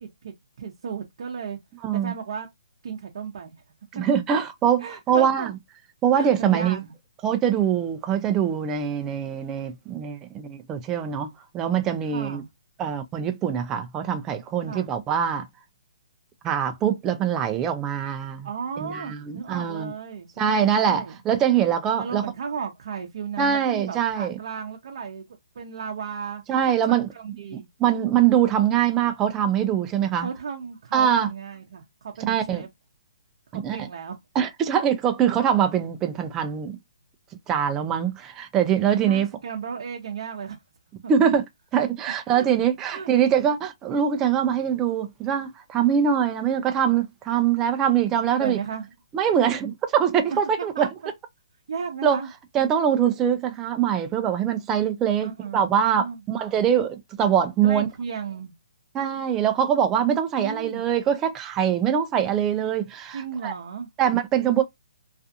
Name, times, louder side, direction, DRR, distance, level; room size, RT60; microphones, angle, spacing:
voice 1, 0.0-1.6 1.9-2.5 2.8-3.5 4.8-5.5 6.1-6.9 12.1-12.5 14.7-14.9 18.4-21.2 22.0-25.2 25.5-27.7 30.2-32.7 33.5-34.2 39.0-40.6 41.0-41.1 42.3-42.5 42.9-43.1 48.4-48.9 50.6-50.9 51.7-52.3 55.2-56.2 57.6-58.5 60.4-60.9 63.1-63.9, right 6 dB, 55° right, 0.6 m, -34 dB
voice 2, 1.8-2.1 3.9-5.5 6.0-6.8 7.2-12.4 12.8-15.5 16.4-18.5 18.8-19.9 20.4-22.2 23.4-24.4 26.5-27.1 27.8-30.3 30.9-31.3 32.3-32.6 33.5-33.9 34.4-36.8 37.5-39.3 41.1-41.4 41.7-48.6 49.1-50.9 52.0-52.2 52.5-57.9 58.9-63.5 64.0-64.6, right 8 dB, 15° right, 0.3 m, -23 dB
2.4 x 2.4 x 2.6 m
hypercardioid pair, 160°, 3 cm